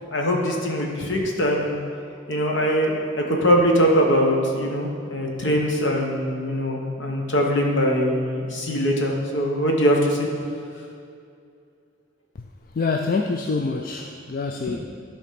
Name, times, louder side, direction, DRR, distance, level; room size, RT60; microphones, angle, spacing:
voice 1, 0.1-1.8 2.3-3.0 3.3-10.3, equal, 65° left, 0 dB, 1.3 m, -22 dB
voice 2, 12.7-14.8, left 4 dB, 45° left, 4 dB, 0.4 m, -25 dB
11.5 x 4.1 x 5.9 m, 2.4 s
head